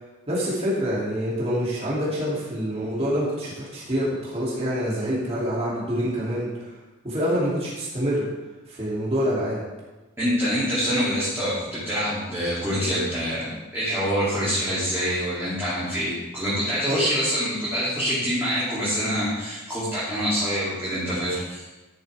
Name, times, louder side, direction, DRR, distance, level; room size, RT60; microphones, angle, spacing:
voice 1, 0.3-6.5 7.0-8.3 8.7-9.6 16.9-17.0, equal, 30° right, -7 dB, 2.7 m, -26 dB
voice 2, 10.2-21.7, equal, 10° right, -12 dB, 2.8 m, -26 dB
13.5 x 7.2 x 3.5 m, 1.1 s
head